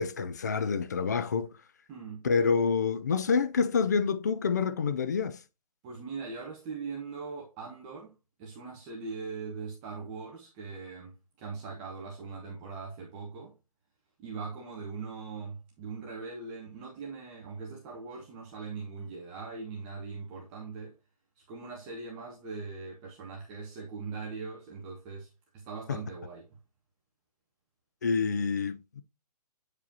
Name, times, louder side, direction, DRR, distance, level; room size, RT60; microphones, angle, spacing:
voice 1, 0.0-1.5 2.2-5.4 28.0-29.0, left 5 dB, 25° left, 0.3 m, -27 dB
voice 2, 1.9-2.2 5.8-8.1 8.4-13.6 14.2-21.0 21.5-26.5, right 4 dB, 15° right, 0.8 m, -41 dB
8.5 x 4.8 x 2.9 m
hypercardioid pair, 165°, 21 cm